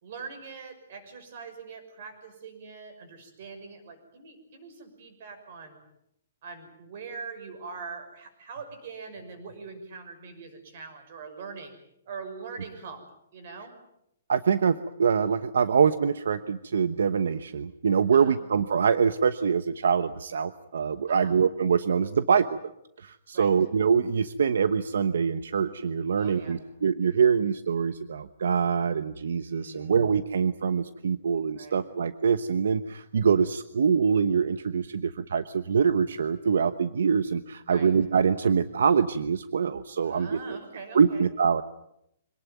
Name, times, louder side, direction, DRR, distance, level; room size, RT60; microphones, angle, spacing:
voice 1, 0.0-5.8 6.4-11.7 12.1-13.0 13.3-13.7 18.1-18.4 21.1-21.4 23.3-23.5 26.2-26.6 29.5-30.0 31.5-31.8 37.7-37.9 40.0-41.2, right 5 dB, 40° right, 8 dB, 6.2 m, -42 dB
voice 2, 14.3-22.6 23.0-40.6 40.9-41.6, right 6 dB, 75° right, 12 dB, 1.1 m, -24 dB
25.5 x 19.0 x 9.3 m, 0.79 s
hypercardioid pair, 175°, 0 cm